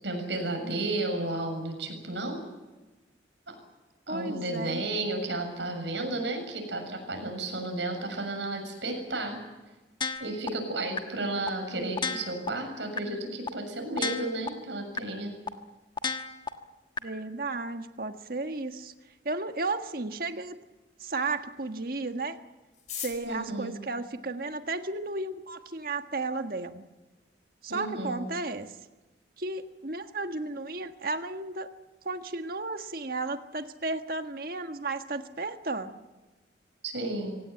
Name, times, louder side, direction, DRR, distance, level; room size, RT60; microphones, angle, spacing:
voice 1, 0.0-2.4 3.5-3.6 4.1-9.4 10.2-15.3 23.2-23.8 27.7-28.3 36.8-37.4, right 2 dB, 75° right, 4 dB, 7.1 m, -33 dB
voice 2, 4.1-4.8 17.0-18.9 19.2-20.6 21.0-22.4 22.9-26.8 27.6-28.8 29.4-31.7 32.0-36.0, right 3 dB, 50° right, 7 dB, 1.6 m, -34 dB
sound 1, 10.0-10.5 11.0-11.1 11.5-11.6 12.0-12.5 13.0-13.1 13.5-13.6 14.0-14.5 15.0-15.1 15.5-15.6 16.0-16.5 17.0-17.1, left 4 dB, 25° left, 1.4 m, -31 dB
sound 2, 22.7-25.0 25.8-25.9 26.1-26.2 26.4-26.9 27.2-27.3 27.5-28.0 28.3-28.5 28.8-29.1, left 9 dB, 40° left, 4.6 m, -42 dB
25.5 x 17.5 x 9.2 m, 1.2 s
head